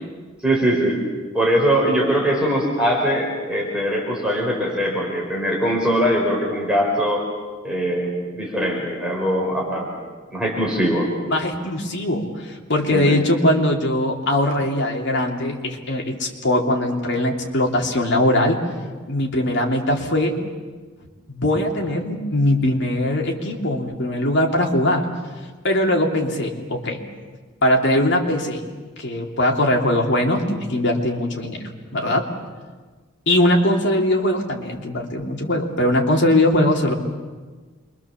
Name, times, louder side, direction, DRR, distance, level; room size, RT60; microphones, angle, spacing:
voice 1, 0.4-1.0 1.3-7.2 7.6-9.9 10.3-11.1 12.9-13.2, equal, 5° right, -3 dB, 4.9 m, -21 dB
voice 2, 11.3-18.6 19.1-20.4 21.3-25.1 25.6-27.0 27.6-28.7 29.0-31.6 31.9-32.3 33.3-36.9, left 1 dB, 55° left, 1 dB, 3.1 m, -21 dB
27.5 x 23.5 x 7.3 m, 1.4 s
head